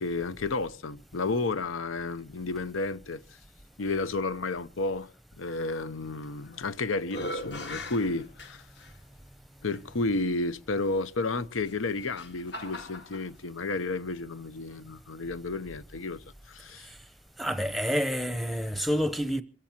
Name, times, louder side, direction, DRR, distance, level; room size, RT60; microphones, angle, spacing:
voice 1, 0.0-3.2 3.8-5.1 5.4-8.6 9.6-16.9, left 3 dB, 90° left, 0.8 m, -32 dB
sound 1, 6.2-6.7 7.0-8.9 9.7-9.8 11.6-13.3, left 1 dB, 60° left, 2.1 m, -39 dB
voice 2, 17.4-19.4, equal, ahead, 0.7 m, -28 dB
27.5 x 16.0 x 2.9 m
head